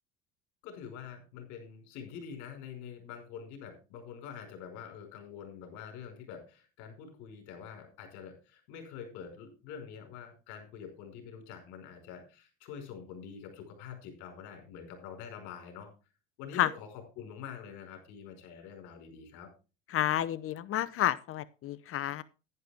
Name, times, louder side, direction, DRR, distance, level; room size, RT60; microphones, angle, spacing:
voice 1, 0.6-15.9 16.4-19.5, left 7 dB, 75° left, 4 dB, 4.9 m, -46 dB
voice 2, 19.9-22.2, left 12 dB, 45° left, 18 dB, 0.7 m, -30 dB
11.0 x 10.5 x 3.5 m, 0.31 s
supercardioid pair, 105°, 30 cm